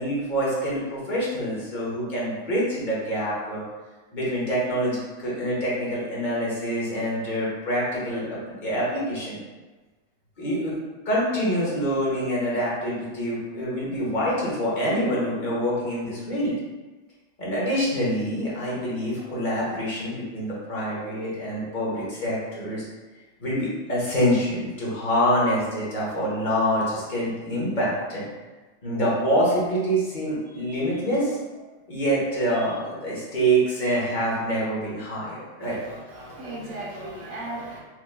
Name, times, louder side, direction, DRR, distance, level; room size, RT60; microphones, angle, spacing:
voice 1, 0.0-3.6 4.1-9.4 10.4-10.7 11.0-16.6 17.4-22.8 23.4-28.3 28.8-31.6 31.9-35.8, equal, 30° left, -7 dB, 1.2 m, -26 dB
voice 2, 35.6-37.8, right 1 dB, 60° right, -5 dB, 1.3 m, -36 dB
4.6 x 3.1 x 2.2 m, 1.2 s
omnidirectional pair, 1.8 m